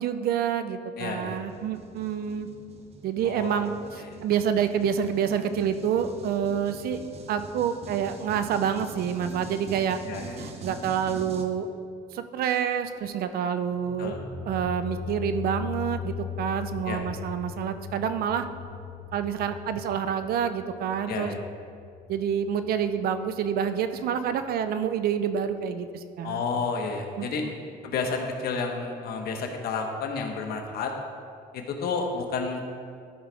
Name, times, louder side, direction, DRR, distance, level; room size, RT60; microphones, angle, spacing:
voice 1, 0.0-2.5 3.0-7.0 7.3-10.0 10.4-11.7 12.1-14.2 14.5-18.4 19.1-21.3 22.1-26.4 27.2-27.5, right 8 dB, 65° right, 10 dB, 0.6 m, -28 dB
voice 2, 1.0-1.4 3.2-3.6 4.0-4.2 10.0-10.4 14.0-14.2 16.9-17.0 21.1-21.4 26.2-27.4 27.8-30.9 31.7-32.6, left 4 dB, 65° left, 3 dB, 1.1 m, -31 dB
sound 1, 1.2-11.5, right 3 dB, 40° right, 0.9 m, -44 dB
sound 2, 13.8-22.7, left 6 dB, 10° left, 1.3 m, -39 dB
12.5 x 5.2 x 3.4 m, 2.3 s
cardioid pair, 110°, 17 cm